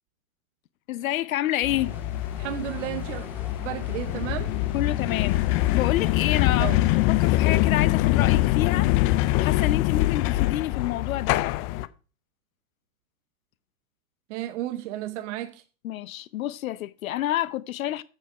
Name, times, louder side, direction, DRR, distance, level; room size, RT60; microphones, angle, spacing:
voice 1, 0.9-1.9 4.7-5.5 5.7-8.9 9.4-11.4 15.8-18.0, left 13 dB, 70° left, 0.7 m, -28 dB
sound 1, 1.6-11.9, left 17 dB, 25° left, 0.4 m, -24 dB
sound 2, 1.7-7.2, equal, 5° right, 1.5 m, -42 dB
voice 2, 2.4-3.3 3.6-4.5 6.6-6.9 14.3-15.6, right 13 dB, 55° right, 0.8 m, -33 dB
8.7 x 7.3 x 4.6 m
hypercardioid pair, 105°, 43 cm